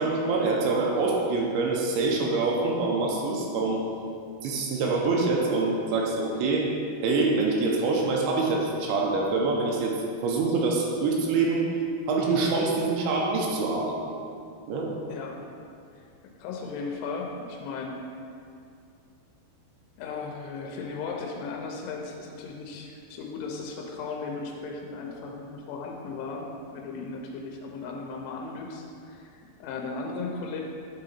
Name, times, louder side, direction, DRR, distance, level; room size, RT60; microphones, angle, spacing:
voice 1, 0.0-3.8 4.4-6.7 7.0-9.9 10.2-11.7 12.1-14.0 14.6-14.9, right 3 dB, 80° right, -1 dB, 2.9 m, -25 dB
voice 2, 16.0-18.0 20.0-26.5 26.7-30.6, left 4 dB, 90° left, 1 dB, 3.1 m, -36 dB
9.5 x 3.8 x 4.3 m, 2.5 s
omnidirectional pair, 5.4 m